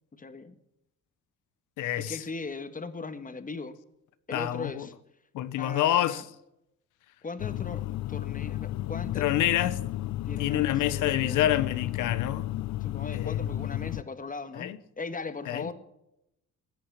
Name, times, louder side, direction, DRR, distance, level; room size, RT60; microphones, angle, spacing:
voice 1, 0.1-0.6 2.0-3.8 4.3-4.9 5.6-6.2 7.2-9.3 10.2-11.5 12.8-15.7, left 4 dB, 25° left, 1.7 m, -38 dB
voice 2, 1.8-2.2 4.3-4.9 5.3-6.2 9.2-9.8 10.4-12.5 13.1-13.5 14.5-14.8 15.5-15.7, left 12 dB, 90° left, 1.0 m, -27 dB
sound 1, 7.4-14.0, left 15 dB, 65° left, 0.5 m, -33 dB
17.0 x 10.0 x 7.4 m
cardioid pair, 90°, 30 cm